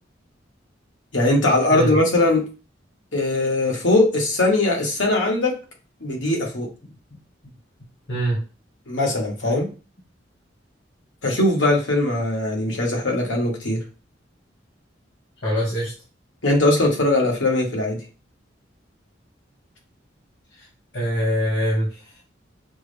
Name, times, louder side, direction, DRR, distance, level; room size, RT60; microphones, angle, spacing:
voice 1, 1.1-2.5 3.1-5.6 6.0-6.7 8.9-9.7 11.2-13.8 16.4-18.0, left 2 dB, 90° left, 0 dB, 1.4 m, -20 dB
voice 2, 8.1-8.4 15.4-15.9 20.5-20.7 20.9-22.2, equal, 70° left, -4 dB, 1.6 m, -24 dB
6.0 x 2.1 x 3.3 m, 0.33 s
head